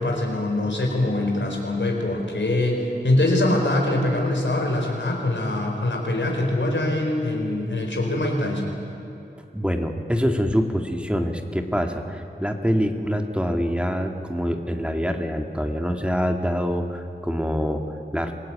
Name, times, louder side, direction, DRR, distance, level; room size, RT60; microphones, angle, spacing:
voice 1, 0.0-8.8, left 1 dB, 90° left, 1 dB, 4.4 m, -23 dB
voice 2, 9.5-18.3, equal, 5° right, 4 dB, 2.2 m, -25 dB
26.5 x 18.0 x 8.9 m, 2.8 s
wide cardioid pair, 50°, 18 cm